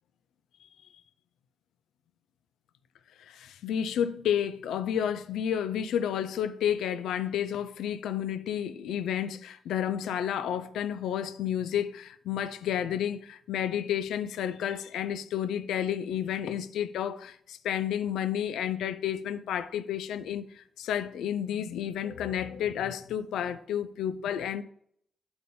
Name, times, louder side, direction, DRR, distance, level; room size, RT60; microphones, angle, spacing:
voice 1, 3.2-24.6, left 9 dB, 85° left, 0.4 m, -31 dB
8.7 x 4.1 x 5.4 m
supercardioid pair, 45°, 0 cm